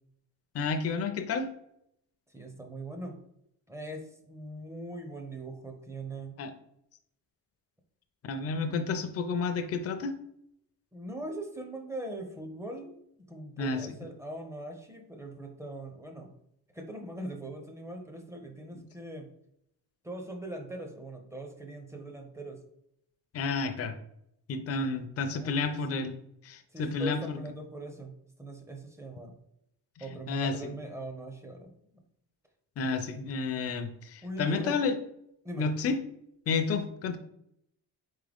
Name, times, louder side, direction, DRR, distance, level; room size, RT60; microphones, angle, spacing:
voice 1, 0.5-1.5 6.4-6.5 8.3-10.1 13.6-13.8 23.3-23.9 24.5-26.2 26.4-27.4 30.3-30.7 32.8-34.9 35.6-36.0 36.5-37.2, left 4 dB, 40° left, 6 dB, 0.5 m, -30 dB
voice 2, 2.3-3.2 3.7-6.3 10.9-13.0 13.3-16.3 16.7-19.3 20.0-22.6 25.3-26.0 26.7-29.4 30.0-32.0 34.2-34.8 35.4-35.7, right 1 dB, 10° right, 3 dB, 0.5 m, -41 dB
4.2 x 3.7 x 3.4 m, 0.76 s
cardioid pair, 155°, 38 cm